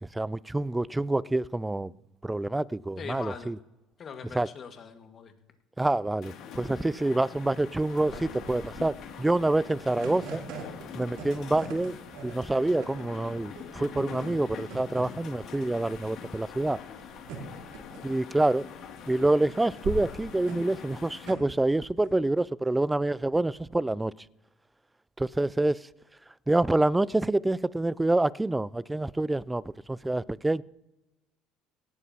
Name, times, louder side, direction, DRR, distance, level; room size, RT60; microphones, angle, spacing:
voice 1, 0.0-1.9 2.2-3.6 4.3-4.5 5.8-10.4 10.9-16.8 18.0-18.7 19.1-24.1 25.2-25.9 26.5-30.6, right 2 dB, 10° right, 0.3 m, -27 dB
voice 2, 3.0-3.5 4.0-5.3, left 6 dB, 40° left, 1.8 m, -41 dB
sound 1, 6.2-21.3, left 7 dB, 55° left, 2.4 m, -44 dB
sound 2, 7.3-22.1, right 5 dB, 70° right, 3.0 m, -43 dB
18.0 x 12.0 x 2.9 m
supercardioid pair, 80°, 0 cm